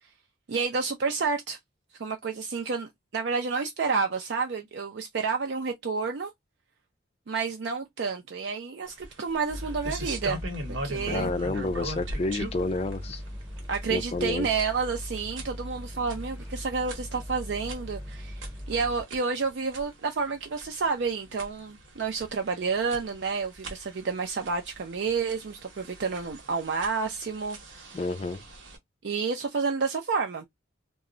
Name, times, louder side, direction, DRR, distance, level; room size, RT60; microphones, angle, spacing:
voice 1, 0.5-1.6 2.0-6.3 7.3-10.4 10.7-11.3 13.7-27.6 29.0-30.5, right 5 dB, 60° right, 0.4 m, -30 dB
sound 1, 8.9-28.8, right 1 dB, 75° right, 0.9 m, -42 dB
sound 2, 9.5-19.0, equal, 10° right, 0.8 m, -39 dB
voice 2, 11.1-13.2 13.9-14.5 27.9-28.4, left 2 dB, 30° left, 0.3 m, -30 dB
2.2 x 2.0 x 3.7 m
head